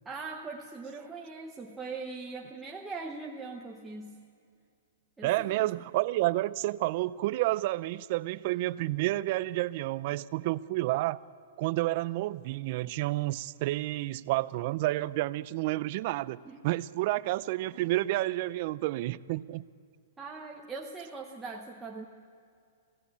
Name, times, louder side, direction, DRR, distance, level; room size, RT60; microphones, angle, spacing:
voice 1, 0.0-4.3 5.2-5.5 16.4-16.6 20.2-22.1, right 4 dB, 10° right, 0.8 m, -41 dB
voice 2, 5.2-11.2 11.6-19.6, right 17 dB, 40° right, 0.4 m, -30 dB
24.0 x 16.5 x 8.5 m
hypercardioid pair, 165°, 0 cm